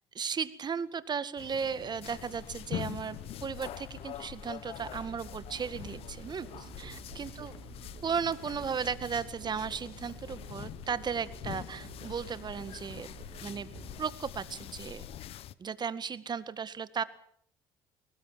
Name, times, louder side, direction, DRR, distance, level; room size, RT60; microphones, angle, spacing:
voice 1, 0.1-7.5 8.0-13.1 13.4-13.7 14.0-15.0 15.6-17.0, right 6 dB, 45° right, 14 dB, 1.9 m, -35 dB
sound 1, 1.4-15.5, left 12 dB, 65° left, 1.0 m, -45 dB
sound 2, 2.1-15.3, left 5 dB, 90° left, 7.1 m, -51 dB
Musical instrument, 4.8-14.0, right 9 dB, 65° right, 2.1 m, -51 dB
22.0 x 19.5 x 7.5 m, 0.63 s
supercardioid pair, 65°, 11 cm